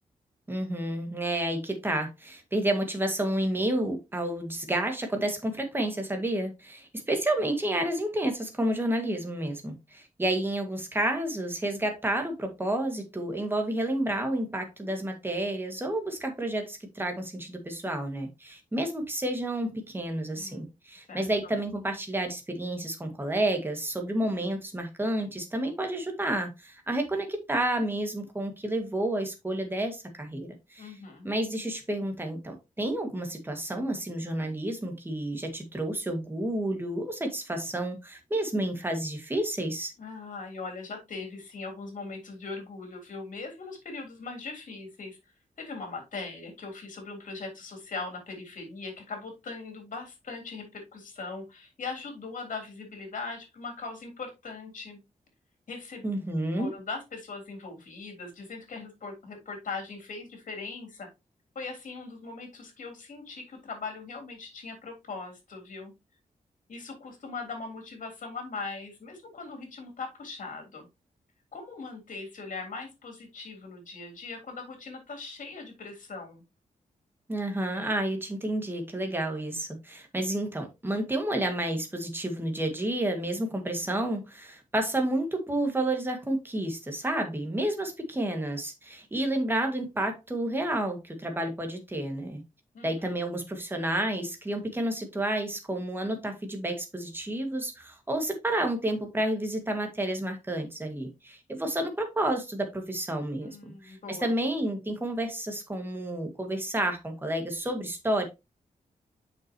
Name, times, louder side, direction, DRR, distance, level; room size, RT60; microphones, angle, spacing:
voice 1, 0.5-31.0 31.2-39.9 56.0-56.7 77.3-92.4 92.8-108.3, right 1 dB, 15° right, 1.9 m, -30 dB
voice 2, 20.4-20.7 21.1-21.3 30.8-31.3 40.0-45.2 45.6-55.0 55.7-56.1 56.6-61.1 61.6-65.9 66.7-70.9 71.5-76.4 92.7-93.1 103.4-104.3, left 4 dB, 65° left, 3.4 m, -40 dB
7.4 x 6.2 x 2.9 m
wide cardioid pair, 120°, 14 cm